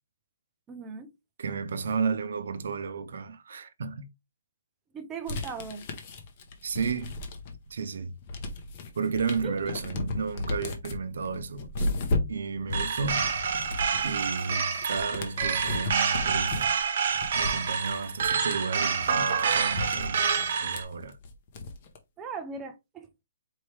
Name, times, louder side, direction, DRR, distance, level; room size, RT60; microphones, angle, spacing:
voice 1, 0.7-1.1 4.9-5.8 9.4-9.6 22.2-23.2, right 5 dB, 10° right, 0.4 m, -38 dB
voice 2, 1.4-4.1 6.6-7.1 7.7-8.1 8.9-11.9 12.3-13.3 14.0-16.8 17.3-21.2, right 5 dB, 65° right, 0.6 m, -33 dB
sound 1, 5.3-7.7 8.0-22.0, left 2 dB, 30° left, 0.7 m, -35 dB
sound 2, 12.7-20.8, right 6 dB, 45° right, 0.9 m, -27 dB
4.4 x 3.1 x 3.2 m
hypercardioid pair, 175°, 0 cm